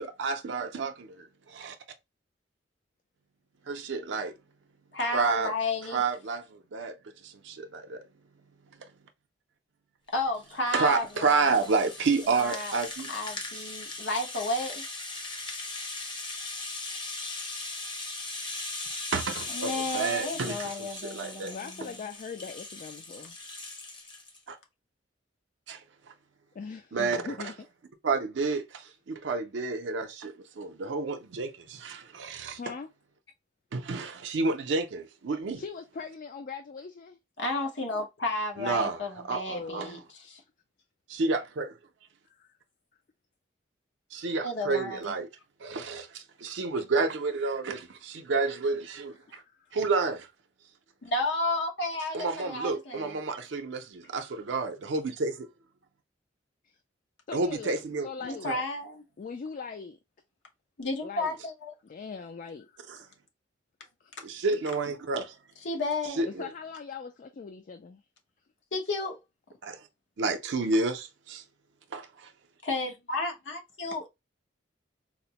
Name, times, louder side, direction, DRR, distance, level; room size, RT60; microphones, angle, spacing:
voice 1, 0.0-1.8 3.6-4.3 5.1-5.5 5.9-8.0 8.8-8.9 10.7-13.2 13.5-13.7 19.1-21.5 24.5-24.6 25.7-26.1 26.9-27.4 28.0-32.6 33.7-35.6 38.6-39.9 41.1-41.8 44.1-45.3 45.6-49.4 49.7-50.3 52.1-55.5 57.3-58.1 58.4-58.6 62.9-63.0 64.2-65.4 66.2-66.5 69.6-69.9 70.2-71.4 71.9-72.3, right 4 dB, 75° right, 0.5 m, -30 dB
voice 2, 4.9-6.0 10.1-11.5 12.3-12.7 13.1-14.9 19.5-21.7 37.4-40.0 40.3-40.4 44.4-45.0 51.0-53.1 58.2-59.0 60.8-61.7 65.6-66.2 68.7-69.2 72.6-74.1, left 2 dB, 75° left, 0.9 m, -32 dB
Rattle (instrument), 10.2-24.4, left 2 dB, 25° left, 0.7 m, -39 dB
voice 3, 21.4-23.4 26.5-27.5 32.6-32.9 35.5-37.2 39.5-40.0 42.3-42.6 49.4-49.8 56.6-56.8 57.3-58.5 59.2-60.0 61.0-61.4 61.8-62.9 64.0-64.1 66.3-68.0, left 5 dB, 45° left, 0.3 m, -41 dB
4.1 x 2.1 x 2.8 m
head